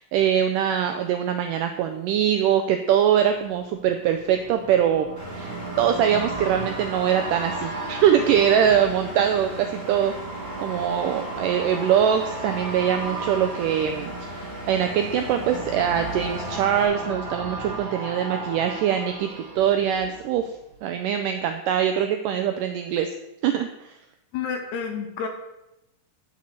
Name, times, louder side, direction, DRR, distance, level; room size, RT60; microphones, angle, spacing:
voice 1, 0.0-5.1 5.3-10.1 10.6-20.5 20.8-23.1 23.4-23.7, right 9 dB, 85° right, 6 dB, 1.8 m, -23 dB
sound 1, 3.0-20.8 21.1-21.2, right 2 dB, 65° right, 3.6 m, -36 dB
Engine, 5.2-16.9, right 1 dB, 45° right, 4.1 m, -37 dB
voice 2, 18.0-18.6 24.3-25.3, left 6 dB, 85° left, 3 dB, 1.6 m, -31 dB
6.7 x 6.4 x 6.8 m, 0.88 s
omnidirectional pair, 4.3 m